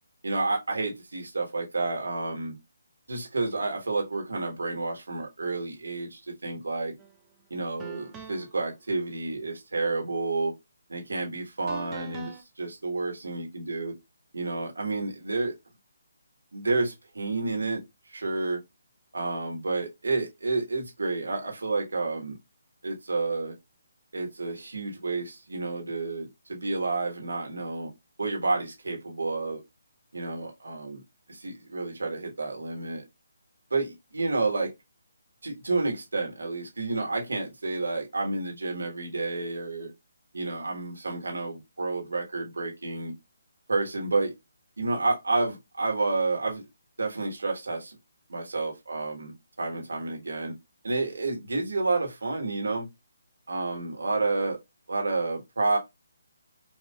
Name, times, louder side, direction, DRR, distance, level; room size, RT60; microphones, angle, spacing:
voice 1, 0.2-2.6 3.1-6.9 7.5-10.5 10.9-13.9 14.3-15.5 16.5-17.8 18.1-18.6 19.1-22.4 22.8-23.5 24.1-27.9 28.2-29.6 30.1-31.0 31.3-33.0 33.7-34.7 35.4-39.9 40.3-43.1 43.7-44.3 44.8-46.6 47.0-48.0 48.3-50.5 50.8-52.9 53.5-54.6 54.9-55.8, right 3 dB, 70° right, 1.2 m, -30 dB
sound 1, 7.0-7.2 7.8-8.6 11.7-12.4, right 6 dB, 15° right, 0.4 m, -42 dB
4.4 x 2.4 x 2.2 m
figure-of-eight pair, 145°, 0 cm